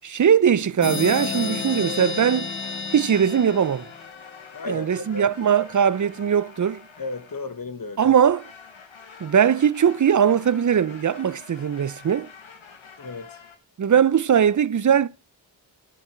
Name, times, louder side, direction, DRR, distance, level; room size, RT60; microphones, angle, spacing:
voice 1, 0.0-2.5 2.9-3.9 4.7-6.8 8.0-8.5 9.2-12.3 13.8-15.1, right 8 dB, 40° right, 0.6 m, -20 dB
sound 1, 0.8-4.4, left 5 dB, 30° left, 0.5 m, -31 dB
sound 2, 1.1-7.7 8.2-13.6, left 5 dB, 85° left, 1.5 m, -46 dB
voice 2, 4.5-5.2 7.0-8.1 13.0-13.4, left 3 dB, 45° left, 1.4 m, -34 dB
11.0 x 7.2 x 4.4 m
cardioid pair, 60°, 45 cm